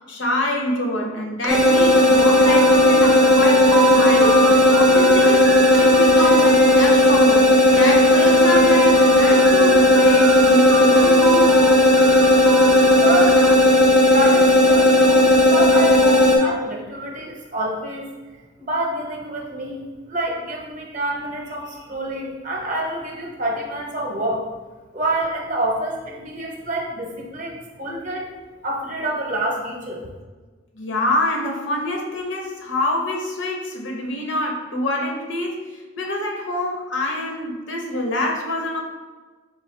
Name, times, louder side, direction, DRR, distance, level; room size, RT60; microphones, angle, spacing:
voice 1, 0.1-7.5 7.7-11.5 30.7-38.8, left 1 dB, 65° left, 1 dB, 0.7 m, -25 dB
sound 1, 1.4-13.6, right 4 dB, 80° right, 0.5 m, -28 dB
sound 2, 1.5-16.4, left 1 dB, 5° right, 0.4 m, -14 dB
voice 2, 13.0-13.4 14.0-18.1 18.6-24.5 24.9-28.3 28.6-30.1, right 1 dB, 40° right, -1 dB, 0.7 m, -27 dB
3.8 x 3.6 x 3.1 m, 1.4 s
head